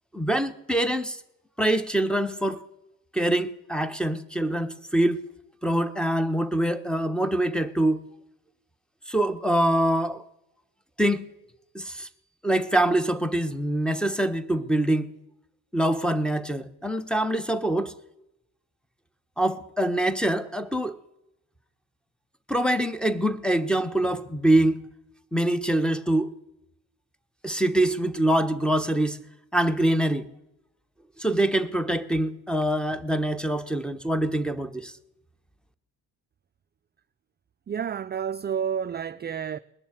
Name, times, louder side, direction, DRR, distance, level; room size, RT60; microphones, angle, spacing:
voice 1, 0.1-1.2 1.6-2.6 3.1-5.2 5.6-8.0 9.1-10.2 11.0-11.3 11.7-12.1 12.4-15.1 15.7-18.0 19.4-21.0 22.5-24.8 25.3-26.3 27.4-29.2 29.5-30.3 31.2-34.9, right 1 dB, ahead, 1.2 m, -24 dB
voice 2, 37.7-39.6, right 8 dB, 25° right, 0.5 m, -30 dB
20.0 x 7.0 x 9.4 m
hypercardioid pair, 60°, 44 cm